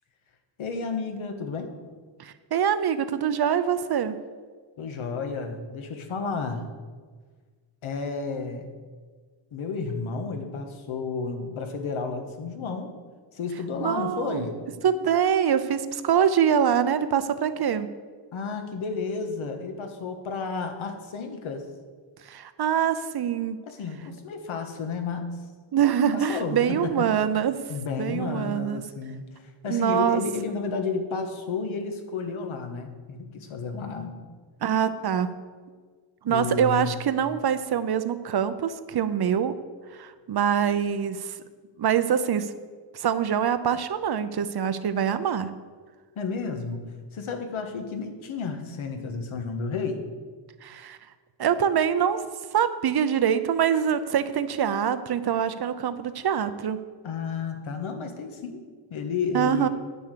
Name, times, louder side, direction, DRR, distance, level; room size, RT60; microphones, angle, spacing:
voice 1, 0.6-1.7 4.8-6.7 7.8-8.6 9.5-12.9 13.3-14.6 18.3-21.6 23.7-25.3 26.1-27.1 27.7-34.2 36.3-36.9 46.1-46.8 47.1-50.0 57.0-58.6 58.9-59.7, left 4 dB, 85° left, 5 dB, 1.4 m, -32 dB
voice 2, 2.2-4.2 13.8-14.4 14.8-17.9 22.2-23.6 25.7-27.6 28.0-28.8 29.7-30.2 34.6-35.3 36.2-39.5 39.9-41.4 41.8-42.5 42.9-45.5 50.6-51.0 51.4-52.2 52.5-56.8 59.3-59.7, right 8 dB, 55° right, 12 dB, 0.7 m, -24 dB
9.4 x 6.9 x 6.8 m, 1.5 s
wide cardioid pair, 140°, 48 cm